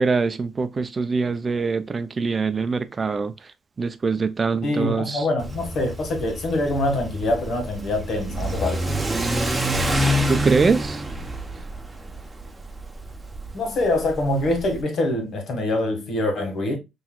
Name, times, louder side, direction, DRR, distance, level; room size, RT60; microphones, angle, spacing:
voice 1, 0.0-3.3 3.8-5.2 10.3-11.0, right 4 dB, 35° right, 0.5 m, -23 dB
voice 2, 4.6-9.1 13.5-16.8, left 1 dB, 65° left, 1.7 m, -24 dB
Car / Accelerating revving vroom, 5.4-14.8, equal, 20° right, 0.8 m, -27 dB
5.7 x 3.0 x 2.3 m
cardioid pair, 90°, 0 cm